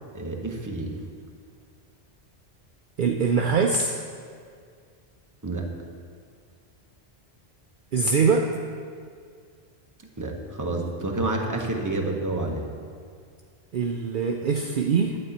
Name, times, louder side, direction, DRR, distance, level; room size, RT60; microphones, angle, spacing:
voice 1, 0.1-0.9 5.4-5.7 10.2-12.6, right 2 dB, 20° right, 1 dB, 0.9 m, -29 dB
voice 2, 3.0-3.9 7.9-8.6 13.7-15.2, right 5 dB, 60° right, 2 dB, 0.7 m, -23 dB
11.0 x 4.3 x 7.8 m, 2.1 s
omnidirectional pair, 1.1 m